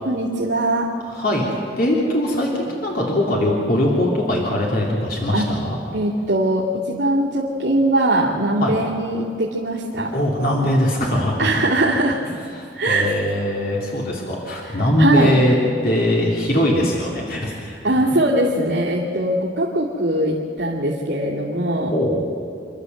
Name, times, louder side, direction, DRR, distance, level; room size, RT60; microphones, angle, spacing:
voice 1, 0.0-0.9 5.3-5.5 5.9-10.1 11.4-12.2 12.7-13.1 15.0-15.4 17.8-21.9, right 1 dB, 75° right, -7 dB, 2.5 m, -21 dB
voice 2, 1.1-5.8 8.6-8.7 10.1-11.5 12.6-15.6 15.8-17.8 21.9-22.2, left 1 dB, 55° left, -3 dB, 3.0 m, -21 dB
28.0 x 12.5 x 7.9 m, 2.7 s
head